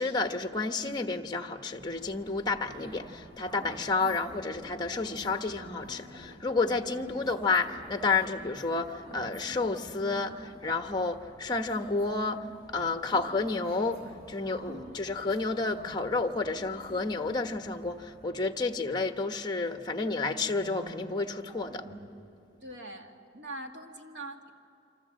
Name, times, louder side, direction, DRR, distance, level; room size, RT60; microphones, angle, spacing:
voice 1, 0.0-3.0 3.4-14.0 14.3-21.8, left 3 dB, 25° left, 6 dB, 1.2 m, -30 dB
sound 1, 1.7-18.2, equal, 65° right, 7.3 m, -50 dB
sound 2, 3.5-16.3 17.3-22.1, right 1 dB, 30° right, 4.1 m, -53 dB
voice 2, 14.7-15.0 22.6-24.5, right 1 dB, 85° right, 3 dB, 2.3 m, -43 dB
28.0 x 25.5 x 7.6 m, 2.7 s
head